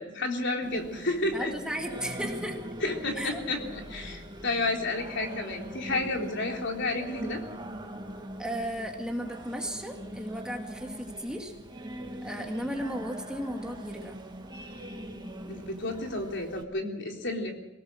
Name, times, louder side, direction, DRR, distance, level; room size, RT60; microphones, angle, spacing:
voice 1, 0.0-1.5 2.8-7.4 15.5-17.5, left 2 dB, 65° left, 2 dB, 3.6 m, -31 dB
Singing, 0.6-16.6, right 1 dB, 20° right, 2.0 m, -42 dB
voice 2, 1.3-2.6 3.2-3.4 5.9-6.1 8.4-11.5 12.2-14.2, equal, 5° right, 2 dB, 2.2 m, -35 dB
24.5 x 18.0 x 6.4 m, 1.0 s
head